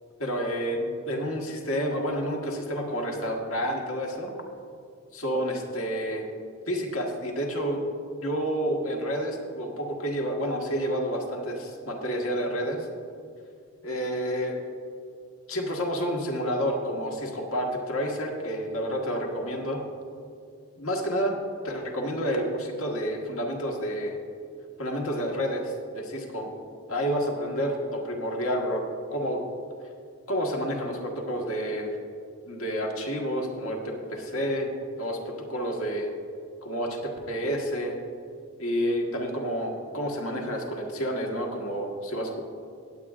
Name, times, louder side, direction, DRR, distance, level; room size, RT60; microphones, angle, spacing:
voice 1, 0.2-4.3 5.1-6.2 6.7-7.8 8.2-12.9 13.8-14.6 15.5-19.8 20.8-21.4 21.6-24.2 24.8-26.5 26.9-28.8 29.1-29.4 30.3-32.0 32.5-34.7 35.0-36.1 36.6-37.9 38.6-42.5, equal, 80° left, 0 dB, 1.5 m, -29 dB
19.5 x 8.5 x 2.5 m, 2.4 s
head